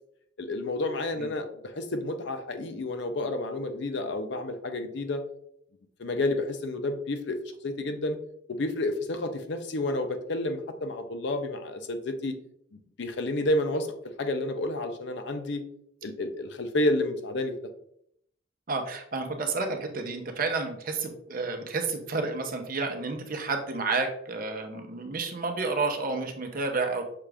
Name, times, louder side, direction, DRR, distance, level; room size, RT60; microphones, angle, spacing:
voice 1, 0.4-5.2 6.0-7.4 7.6-8.2 8.5-12.4 12.7-13.9 14.2-15.6 16.0-17.6, left 2 dB, 60° left, 7 dB, 0.5 m, -30 dB
voice 2, 18.7-27.1, right 3 dB, 45° right, 4 dB, 0.7 m, -30 dB
5.8 x 2.4 x 3.3 m, 0.72 s
head